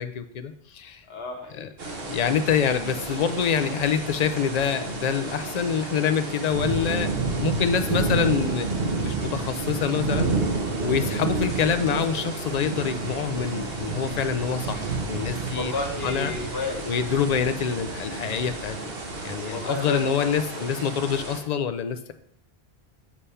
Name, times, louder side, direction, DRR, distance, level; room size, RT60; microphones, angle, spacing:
voice 1, 0.0-1.0 1.6-1.7 2.0-10.3 10.8-15.7 16.0-16.3 16.9-18.9 19.2-22.1, left 7 dB, 50° left, 8 dB, 0.5 m, -26 dB
voice 2, 1.1-1.7 15.5-16.9 19.5-20.7, left 3 dB, 70° left, 2 dB, 1.4 m, -32 dB
sound 1, 1.8-21.4, right 3 dB, 65° right, 1.3 m, -30 dB
7.3 x 3.4 x 5.5 m, 0.66 s
omnidirectional pair, 1.1 m